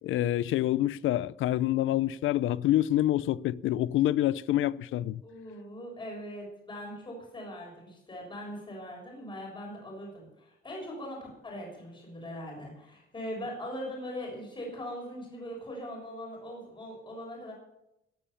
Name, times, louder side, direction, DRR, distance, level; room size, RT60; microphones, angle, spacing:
voice 1, 0.0-5.2, left 13 dB, 80° left, 0.5 m, -27 dB
voice 2, 5.2-17.5, equal, 25° left, 6.9 m, -41 dB
18.5 x 10.5 x 7.1 m
cardioid pair, 160°, 20 cm